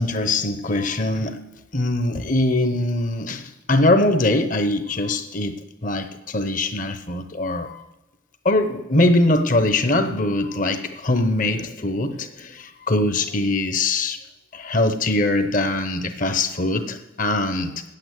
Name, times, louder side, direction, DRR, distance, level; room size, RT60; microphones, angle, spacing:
voice 1, 0.0-7.8 8.4-14.2 14.5-17.8, left 2 dB, 40° left, 9 dB, 0.9 m, -22 dB
8.7 x 8.7 x 7.9 m, 0.99 s
head